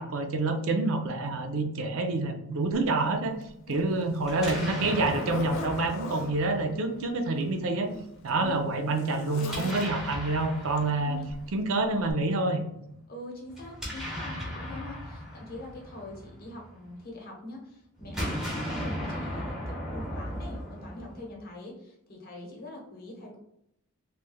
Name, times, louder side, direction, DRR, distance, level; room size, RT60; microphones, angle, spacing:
voice 1, 0.0-3.3 3.7-7.9 8.2-11.2 11.5-12.6, right 2 dB, 75° right, 6 dB, 0.5 m, -27 dB
Zipper (clothing), 2.7-2.8 3.4-6.3 7.3-10.3 11.2-11.5 12.1-12.2, left 4 dB, 65° left, 0.4 m, -41 dB
Explosion, 4.2-7.3 9.4-11.6 13.5-16.9 18.0-21.4, equal, ahead, 0.8 m, -37 dB
voice 2, 11.0-11.3 13.1-23.4, left 2 dB, 45° left, 0 dB, 0.8 m, -43 dB
3.2 x 3.1 x 2.2 m, 0.77 s
head